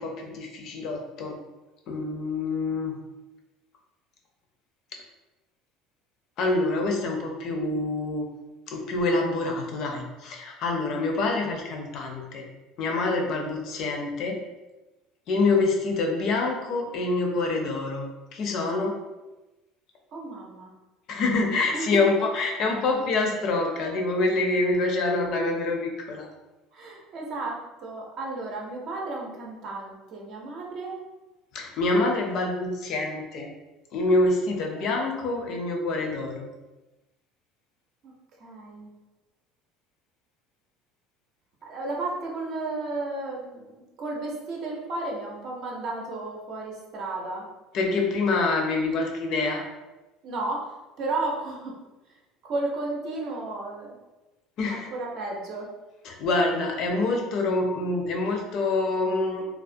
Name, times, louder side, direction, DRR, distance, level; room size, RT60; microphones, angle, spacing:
voice 1, 0.0-1.4 1.9-2.9 6.4-8.3 8.7-12.5 12.8-14.4 15.3-19.0 21.1-26.3 31.5-33.5 33.9-36.5 47.7-49.6 54.6-54.9 56.0-59.4, left 3 dB, 55° left, 2 dB, 0.4 m, -26 dB
voice 2, 20.1-20.7 21.7-22.0 26.7-31.0 38.0-38.1 38.4-38.9 41.6-47.4 50.2-50.7 51.0-51.8 52.4-53.9 54.7-55.7, right 2 dB, 50° right, -2 dB, 0.6 m, -33 dB
2.3 x 2.0 x 2.6 m, 1.1 s
supercardioid pair, 125°, 0 cm